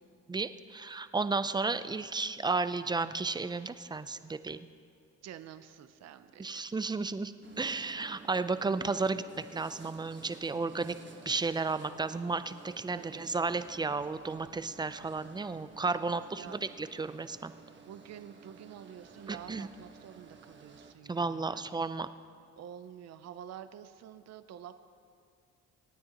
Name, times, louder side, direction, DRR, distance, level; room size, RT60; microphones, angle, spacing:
voice 1, 0.3-4.6 6.4-11.0 11.3-17.5 19.3-19.7 21.1-22.1, right 3 dB, 15° right, 12 dB, 0.4 m, -33 dB
voice 2, 5.2-6.6 12.9-13.4 16.3-16.5 17.9-21.7 22.6-24.8, right 9 dB, 60° right, 11 dB, 0.6 m, -48 dB
sound 1, 7.4-20.9, right 4 dB, 40° right, 1.2 m, -54 dB
26.0 x 9.5 x 2.9 m, 2.3 s
cardioid pair, 90°, 30 cm